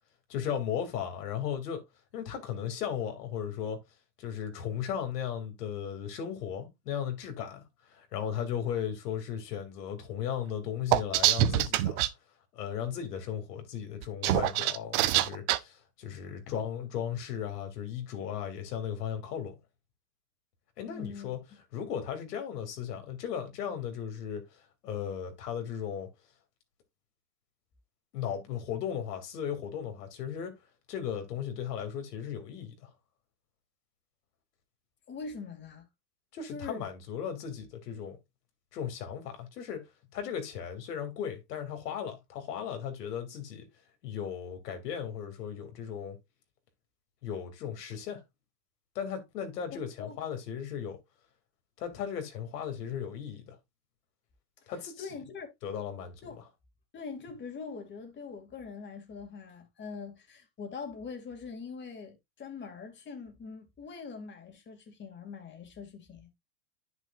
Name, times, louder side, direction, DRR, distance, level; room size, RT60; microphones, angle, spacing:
voice 1, 0.3-1.8 2.1-3.8 4.2-12.0 12.5-19.5 20.8-21.4 21.7-26.1 28.1-30.6 30.9-32.9 36.3-38.2 38.7-39.8 40.1-43.7 44.0-46.2 47.2-48.2 48.9-51.0 51.8-53.6 54.7-55.0 55.6-56.4, left 8 dB, 70° left, 3.0 m, -36 dB
sound 1, 10.9-12.1 14.0-15.6, right 15 dB, 45° right, 1.0 m, -25 dB
voice 2, 20.9-21.4 35.1-35.9 36.5-36.9 49.7-50.2 54.6-54.7 55.0-55.5 56.2-56.4 56.9-66.3, left 5 dB, 20° left, 2.7 m, -43 dB
10.5 x 6.1 x 2.6 m
hypercardioid pair, 125°, 48 cm